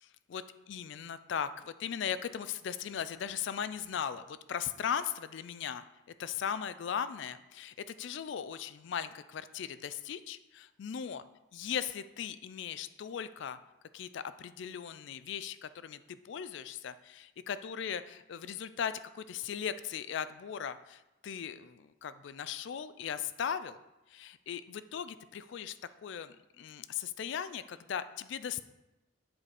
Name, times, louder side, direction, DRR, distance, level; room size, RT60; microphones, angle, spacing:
voice 1, 0.3-5.8 6.2-11.2 11.5-13.6 13.9-23.8 24.1-25.8 26.0-28.6, left 8 dB, 60° left, 14 dB, 0.3 m, -38 dB
7.5 x 4.2 x 4.8 m, 0.98 s
head